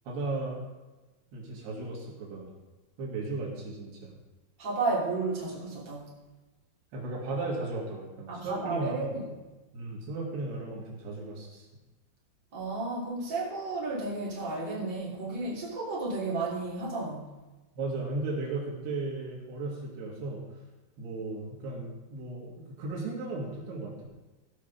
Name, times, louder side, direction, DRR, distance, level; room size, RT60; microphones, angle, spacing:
voice 1, 0.1-0.6 1.3-2.5 3.0-4.1 6.9-9.2 9.7-11.7 17.8-20.4 21.0-24.1, right 2 dB, 85° right, -3 dB, 4.2 m, -35 dB
voice 2, 4.6-6.1 8.3-9.2 12.5-17.4, right 3 dB, 30° right, -6 dB, 3.3 m, -32 dB
16.5 x 5.7 x 5.3 m, 1.1 s
omnidirectional pair, 4.6 m